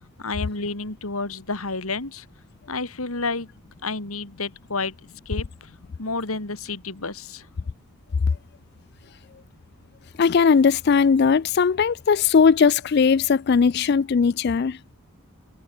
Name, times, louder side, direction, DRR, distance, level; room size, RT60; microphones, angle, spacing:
voice 1, 0.0-2.3 2.7-3.5 3.8-5.0 5.2-5.7 6.0-7.5, left 3 dB, 80° left, 2.8 m, -30 dB
voice 2, 10.2-14.8, left 5 dB, 45° left, 0.3 m, -18 dB
head